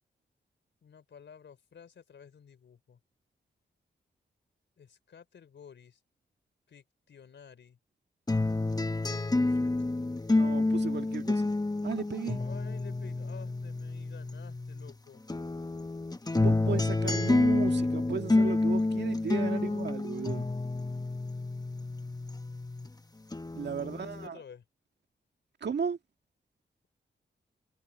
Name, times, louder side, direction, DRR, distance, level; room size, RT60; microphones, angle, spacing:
voice 1, 0.8-3.0 4.8-6.0 6.7-7.8 8.9-9.7 12.4-15.2 19.3-19.9 23.8-24.7, left 7 dB, 75° left, 4.1 m, -52 dB
sound 1, 8.3-14.9 15.3-22.9 23.3-24.3, left 2 dB, 20° left, 1.3 m, -29 dB
voice 2, 10.3-11.5 11.8-12.4 16.3-20.5 23.6-24.4 25.6-26.0, right 6 dB, 65° right, 2.0 m, -35 dB
cardioid pair, 60°, 19 cm